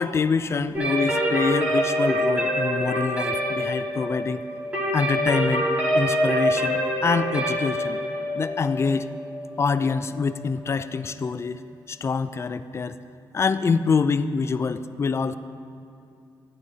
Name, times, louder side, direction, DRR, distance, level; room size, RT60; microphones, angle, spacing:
voice 1, 0.0-4.4 4.9-5.7 5.9-8.0 8.3-9.1 9.6-11.6 11.9-13.0 13.3-15.4, left 5 dB, 35° left, 12 dB, 0.4 m, -25 dB
sound 1, 0.7-10.4, equal, 20° right, 2.3 m, -25 dB
14.0 x 10.5 x 2.8 m, 2.6 s
cardioid pair, 105°, 8 cm